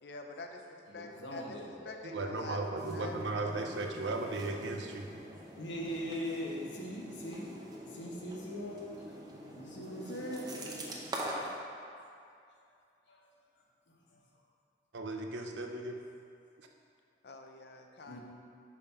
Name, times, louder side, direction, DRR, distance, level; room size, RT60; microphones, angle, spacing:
voice 1, 0.0-1.6 1.8-3.7 4.1-4.7 17.2-18.2, left 3 dB, 65° left, 3 dB, 0.6 m, -47 dB
voice 2, 0.9-2.1 2.4-2.5 5.6-7.5 7.8-9.1 9.5-10.5 12.1-12.3 13.1-13.3 13.9-14.2 18.1-18.2, equal, 85° left, -2 dB, 1.1 m, -41 dB
voice 3, 2.0-5.1 14.9-16.0 16.6-16.7, right 2 dB, 85° right, 3 dB, 0.6 m, -36 dB
sound 1, 2.8-11.5, right 1 dB, 20° right, 0.7 m, -44 dB
5.3 x 5.0 x 5.6 m, 2.4 s
head